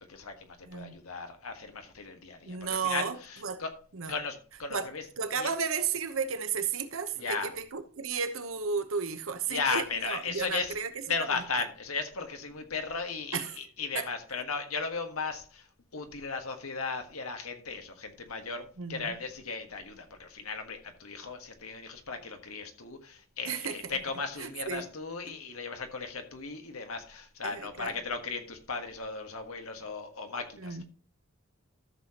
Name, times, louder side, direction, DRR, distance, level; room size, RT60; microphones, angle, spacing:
voice 1, 0.1-3.7 4.1-5.0 5.4-5.5 7.2-7.5 9.5-10.8 11.1-15.7 15.9-30.8, left 4 dB, 85° left, 1.6 m, -36 dB
voice 2, 0.6-1.0 2.4-3.2 3.4-3.6 3.9-4.1 4.7-4.9 5.2-10.9 13.3-13.5 13.9-14.1 18.8-19.2 23.4-24.0 24.4-24.9 27.4-27.9 30.6-30.8, right 5 dB, 70° right, 1.0 m, -33 dB
13.5 x 6.8 x 3.0 m
head